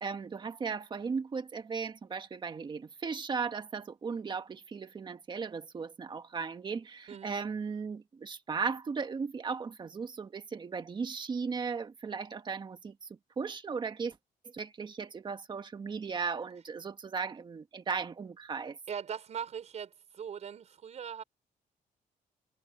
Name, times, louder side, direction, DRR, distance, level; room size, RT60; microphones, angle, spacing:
voice 1, 0.0-13.1 13.4-14.2 14.5-18.8, right 5 dB, 30° right, 1.5 m, -36 dB
voice 2, 18.9-21.2, right 8 dB, 50° right, 5.6 m, -40 dB
cardioid pair, 150°, 15 cm